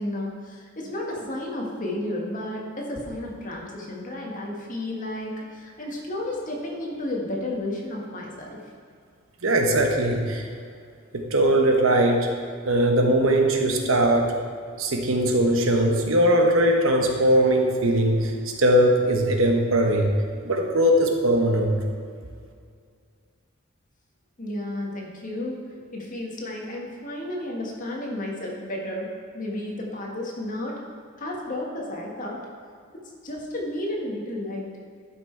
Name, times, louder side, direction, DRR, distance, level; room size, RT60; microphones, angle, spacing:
voice 1, 0.0-8.6 24.4-25.6 25.9-30.8 31.2-32.4 33.2-34.7, left 1 dB, 40° left, -1 dB, 1.6 m, -32 dB
voice 2, 9.4-10.5 11.1-12.3 12.7-14.3 14.8-20.1 20.4-21.7, right 1 dB, 75° right, 3 dB, 1.1 m, -20 dB
11.5 x 5.9 x 4.6 m, 2.2 s
head